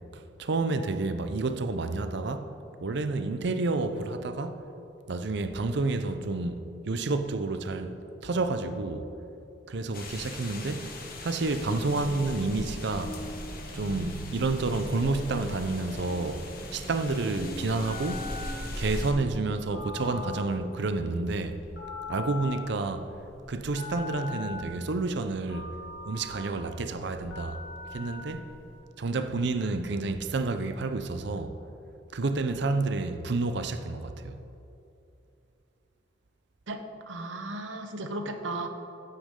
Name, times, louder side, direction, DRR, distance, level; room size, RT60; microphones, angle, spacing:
voice 1, 0.1-2.5 2.8-4.6 5.1-9.1 9.7-10.9 11.2-13.2 13.7-18.3 18.8-21.6 22.1-23.1 23.5-25.7 26.1-27.6 27.9-28.5 29.0-31.6 32.1-34.4, right 3 dB, 65° right, 0.6 m, -30 dB
sound 1, 9.9-19.1, left 1 dB, 50° left, 1.4 m, -40 dB
sound 2, 11.1-21.1, right 1 dB, 30° left, 2.0 m, -43 dB
Telephone, 17.3-28.7, left 4 dB, 80° left, 2.8 m, -42 dB
voice 2, 37.1-38.7, right 2 dB, 85° right, 1.0 m, -35 dB
15.0 x 8.5 x 3.7 m
head